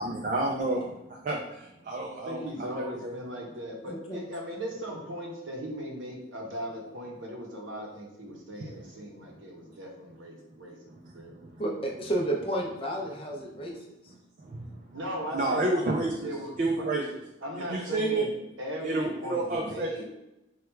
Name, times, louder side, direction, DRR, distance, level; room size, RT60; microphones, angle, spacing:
voice 1, 0.0-2.4 2.7-3.1 8.6-9.0 9.6-9.8 10.9-11.6 13.7-13.8 14.4-15.0 15.3-16.3 16.6-17.0 17.7-18.2 18.8-19.9, right 2 dB, 40° right, -1 dB, 0.3 m, -30 dB
voice 2, 2.3-10.8 11.1-11.3 14.9-15.7 16.2-16.5 16.8-16.9 17.4-20.0, equal, 85° right, 0 dB, 0.7 m, -38 dB
voice 3, 11.6-13.9, right 1 dB, 30° left, 0 dB, 0.5 m, -31 dB
3.0 x 2.2 x 3.3 m, 0.91 s
head